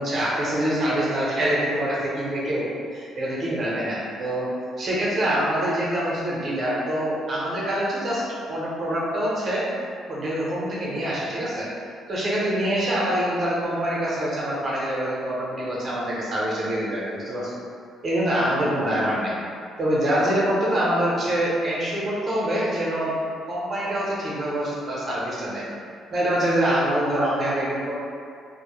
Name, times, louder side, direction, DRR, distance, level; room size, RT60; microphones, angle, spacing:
voice 1, 0.0-4.5 4.8-8.2 8.5-9.7 10.1-11.7 12.1-17.5 18.0-19.3 19.8-23.1 23.5-25.6 26.1-27.9, right 1 dB, 40° right, -7 dB, 0.7 m, -25 dB
2.1 x 2.0 x 3.0 m, 2.3 s
cardioid pair, 130°, 0 cm